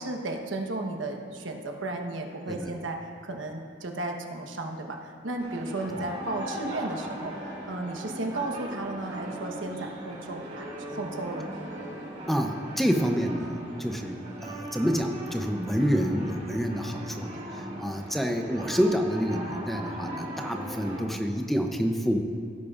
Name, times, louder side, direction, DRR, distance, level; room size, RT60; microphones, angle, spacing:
voice 1, 0.0-11.6, right 2 dB, 90° right, 3 dB, 1.1 m, -34 dB
voice 2, 2.5-2.8 12.3-22.2, equal, ahead, 4 dB, 0.6 m, -28 dB
sound 1, 5.4-21.0, right 1 dB, 40° right, 2.9 m, -39 dB
17.0 x 10.0 x 2.5 m, 2.5 s
head